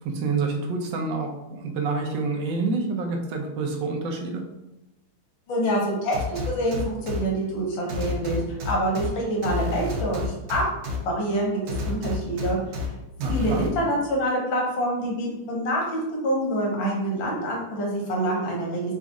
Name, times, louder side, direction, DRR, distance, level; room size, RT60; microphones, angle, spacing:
voice 1, 0.0-4.4 13.2-13.6, right 4 dB, 70° right, 2 dB, 1.2 m, -28 dB
voice 2, 5.5-10.6 11.0-12.6 13.3-15.8 16.2-18.8, right 1 dB, 65° left, -2 dB, 1.6 m, -26 dB
sound 1, 6.1-7.2 7.9-9.1 9.4-11.0 11.7-12.9 13.2-13.7, left 3 dB, 85° right, 1.7 m, -29 dB
4.0 x 2.4 x 3.6 m, 0.91 s
omnidirectional pair, 2.4 m